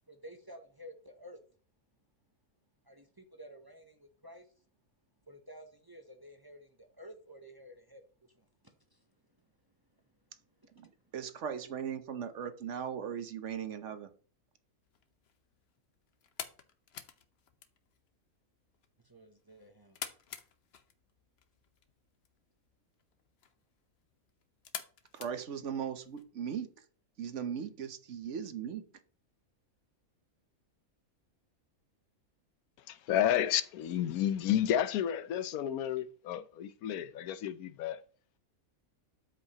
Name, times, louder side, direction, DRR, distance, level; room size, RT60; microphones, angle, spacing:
voice 1, 0.1-1.4 2.8-4.5 5.3-9.0 10.6-10.9 19.0-20.0, equal, 30° right, 0.4 m, -53 dB
voice 2, 10.8-14.1 25.1-26.9 27.2-28.8, right 8 dB, 60° right, 1.0 m, -38 dB
sound 1, 14.8-26.2, left 8 dB, 55° left, 0.9 m, -50 dB
voice 3, 32.9-38.0, left 10 dB, 85° left, 1.1 m, -31 dB
12.5 x 5.1 x 2.9 m
omnidirectional pair, 1.5 m